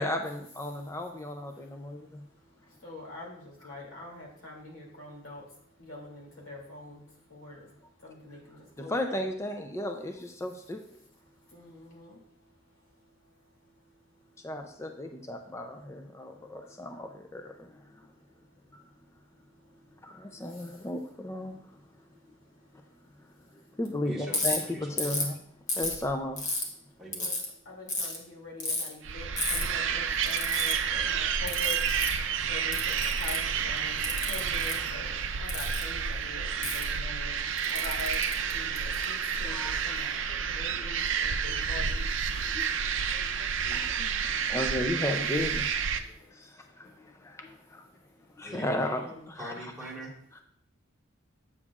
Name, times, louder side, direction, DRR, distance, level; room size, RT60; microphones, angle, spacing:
voice 1, 0.0-2.2 8.8-11.0 14.4-18.1 18.7-18.8 20.0-21.8 23.5-25.4 25.7-26.5 37.8-37.9 39.5-39.8 42.3-43.3 43.7-44.0 44.3-45.8 46.2-47.9 48.4-49.5 50.3-50.4, left 1 dB, 15° left, 5 dB, 0.4 m, -35 dB
voice 2, 1.5-9.2 11.2-14.5 16.1-16.9 18.1-20.8 21.5-23.8 26.8-27.3 27.6-42.8 43.3-44.5 46.0-46.1 46.6-47.0 48.0-49.3, left 2 dB, 80° left, -2 dB, 2.6 m, -47 dB
voice 3, 24.0-24.4 24.7-25.2 27.0-27.3 48.4-48.9 49.4-50.1, right 1 dB, ahead, -6 dB, 1.7 m, -42 dB
Ratchet pawl, 24.3-24.6 25.0-25.3 25.7-26.6 27.1-27.5 27.9-28.2 28.6-28.9 29.4-29.6 30.2-30.7 31.5-32.1 32.7-33.5 34.0-34.7 35.5-35.8 36.6-36.8 37.6-39.0, left 2 dB, 40° left, 1.2 m, -31 dB
sound 1, 29.0-46.0, right 7 dB, 65° right, 0.5 m, -30 dB
8.3 x 7.0 x 2.4 m, 0.67 s
head